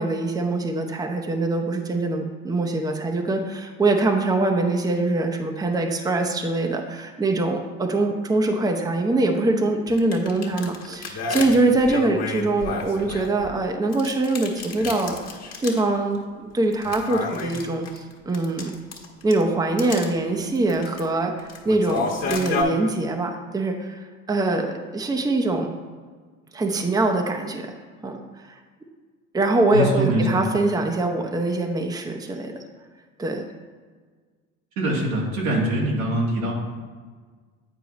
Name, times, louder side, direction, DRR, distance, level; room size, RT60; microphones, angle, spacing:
voice 1, 0.0-15.2 15.6-16.2 16.5-18.8 19.2-24.0 24.3-25.7 26.5-27.7 28.0-28.2 29.3-32.5 33.2-33.4, right 2 dB, 10° right, 3 dB, 0.7 m, -23 dB
sound 1, 9.9-13.5 13.9-15.9 16.1-16.2 16.7-19.4 19.8-20.1 20.5-21.0 21.4-22.6, left 4 dB, 40° left, 1.4 m, -31 dB
voice 2, 29.7-30.4 34.8-36.5, right 1 dB, 85° right, -3 dB, 1.8 m, -23 dB
8.8 x 4.6 x 3.0 m, 1.5 s
hypercardioid pair, 75°, 41 cm